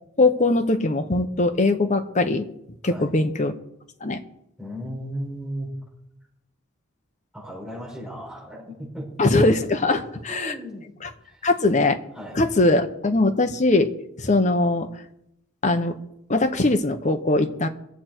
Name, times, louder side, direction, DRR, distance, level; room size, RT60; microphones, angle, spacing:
voice 1, 0.2-2.4 2.8-3.5 4.0-4.2 9.2-10.5 11.4-12.0 12.3-13.9 14.2-14.9 15.6-16.0 16.3-17.7, left 2 dB, 35° left, 6 dB, 1.1 m, -21 dB
voice 2, 4.6-5.8 7.3-9.1 9.9-10.0 10.3-11.0 11.2-11.5 12.1-12.4, equal, 5° right, -4 dB, 5.6 m, -35 dB
23.5 x 8.0 x 4.6 m, 0.80 s
head